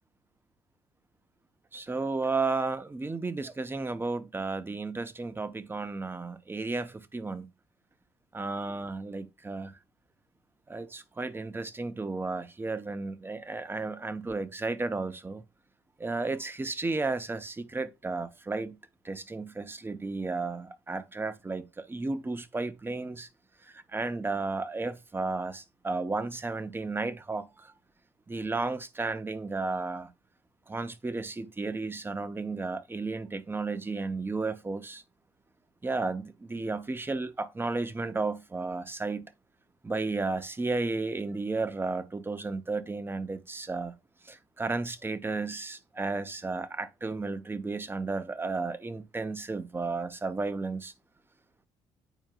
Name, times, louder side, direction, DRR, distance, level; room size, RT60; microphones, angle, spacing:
voice 1, 1.7-7.4 8.3-9.8 10.7-15.4 16.0-18.8 19.0-23.3 23.6-27.7 28.3-30.1 30.7-35.0 35.8-39.3 39.8-43.9 44.2-50.9, right 3 dB, 15° right, 0.7 m, -33 dB
9.1 x 4.4 x 2.4 m
supercardioid pair, 70°, 13 cm